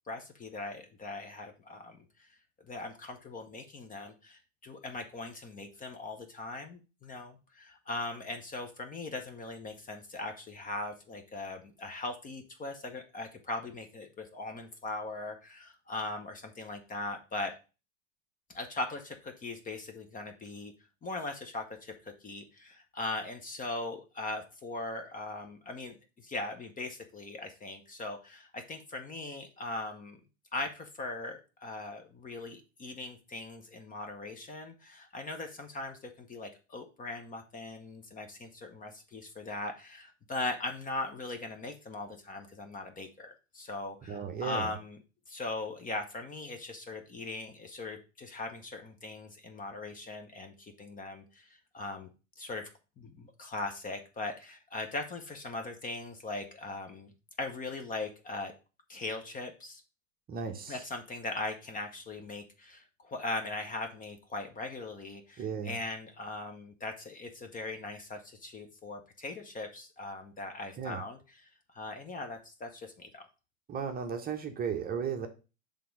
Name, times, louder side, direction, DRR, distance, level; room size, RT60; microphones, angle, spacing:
voice 1, 0.1-2.0 2.7-17.5 18.5-20.7 21.0-30.2 30.5-45.0 45.3-52.1 52.4-52.7 53.0-57.1 57.4-58.5 58.9-59.8 60.7-71.2 71.7-73.3, left 2 dB, 20° left, 6 dB, 0.8 m, -40 dB
voice 2, 44.1-44.7 60.3-60.8 65.4-65.7 70.8-71.0 73.7-75.3, right 6 dB, 25° right, 5 dB, 0.8 m, -35 dB
5.8 x 3.6 x 5.2 m, 0.31 s
hypercardioid pair, 115°, 39 cm